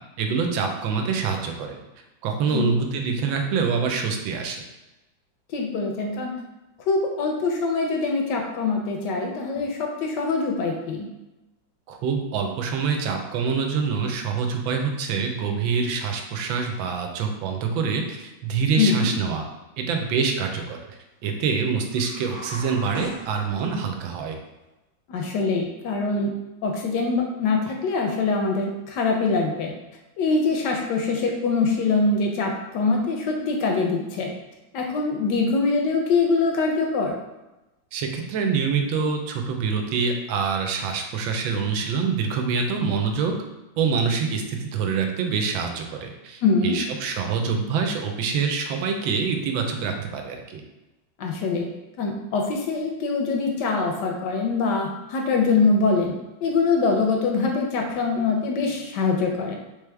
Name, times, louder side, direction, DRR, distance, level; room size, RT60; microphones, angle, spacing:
voice 1, 0.2-1.8 2.2-4.6 11.9-19.4 19.8-20.8 21.2-24.4 37.9-43.3 43.8-50.6, right 5 dB, 90° right, 4 dB, 1.4 m, -25 dB
voice 2, 5.5-6.3 6.9-11.1 18.8-19.1 25.1-26.3 26.6-29.7 30.2-34.3 34.7-37.2 46.4-46.8 51.2-51.7 52.0-56.1 56.4-59.6, left 4 dB, 75° left, 1 dB, 1.1 m, -23 dB
sound 1, 21.9-23.9, right 1 dB, 45° right, 1.0 m, -38 dB
3.6 x 3.4 x 3.3 m, 1.0 s
omnidirectional pair, 2.1 m